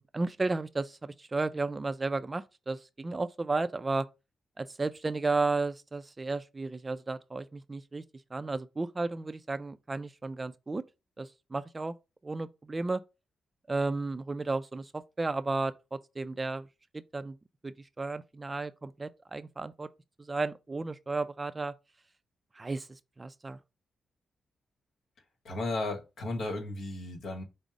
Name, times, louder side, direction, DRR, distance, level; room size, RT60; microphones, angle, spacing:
voice 1, 0.0-4.1 4.6-8.0 8.3-10.8 11.2-11.9 12.2-13.0 13.7-16.7 16.9-17.4 17.6-19.9 20.2-21.7 22.6-23.6, right 3 dB, 25° right, 0.3 m, -33 dB
voice 2, 25.4-27.4, left 2 dB, 75° left, 1.3 m, -34 dB
5.2 x 2.0 x 4.7 m
cardioid pair, 90°, 0 cm